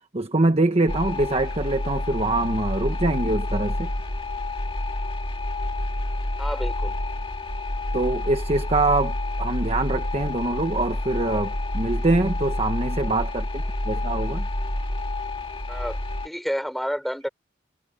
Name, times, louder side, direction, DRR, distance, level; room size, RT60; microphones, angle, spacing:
voice 1, 0.1-3.9 7.9-14.5, right 2 dB, 35° right, 1.2 m, -24 dB
sound 1, 0.9-16.3, left 1 dB, 30° left, 2.2 m, -28 dB
voice 2, 6.4-7.0 15.7-16.0 16.2-17.3, equal, ahead, 3.7 m, -29 dB
head